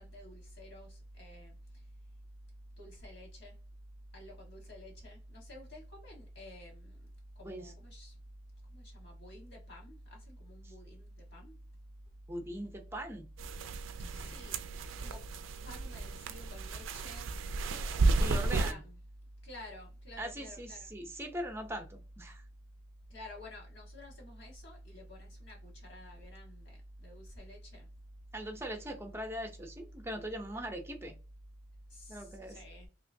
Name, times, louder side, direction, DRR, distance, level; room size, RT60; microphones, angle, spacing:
voice 1, 0.0-1.8 2.8-3.6 4.1-7.1 7.4-8.1 8.7-11.6 14.1-14.7 15.0-15.2 15.6-17.3 17.7-19.0 19.4-20.9 23.1-27.9 31.9-32.9, left 1 dB, 65° left, 1.5 m, -50 dB
voice 2, 12.3-13.3 14.0-14.4 18.2-18.8 20.2-22.4 28.3-31.1 32.1-32.6, right 1 dB, 15° right, 0.6 m, -41 dB
sound 1, 13.4-18.7, right 3 dB, 80° right, 0.4 m, -33 dB
3.0 x 2.9 x 2.6 m
head